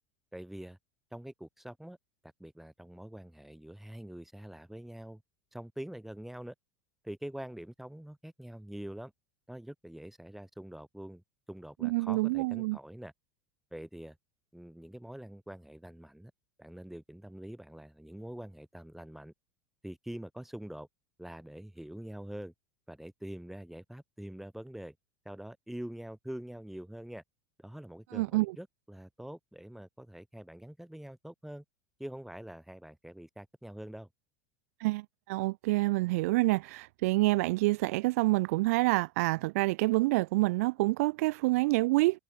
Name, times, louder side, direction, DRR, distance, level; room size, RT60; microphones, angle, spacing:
voice 1, 0.3-0.8 1.1-2.0 2.2-5.2 5.5-6.5 7.0-9.1 9.5-11.2 11.5-13.1 13.7-14.2 14.5-16.3 16.6-19.3 19.8-20.9 21.2-22.5 22.9-24.9 25.2-27.2 27.6-31.6 32.0-34.1, right 1 dB, 5° right, 7.9 m, -45 dB
voice 2, 11.8-12.8 28.1-28.6 34.8-42.2, right 22 dB, 65° right, 0.5 m, -27 dB
hypercardioid pair, 85°, 9 cm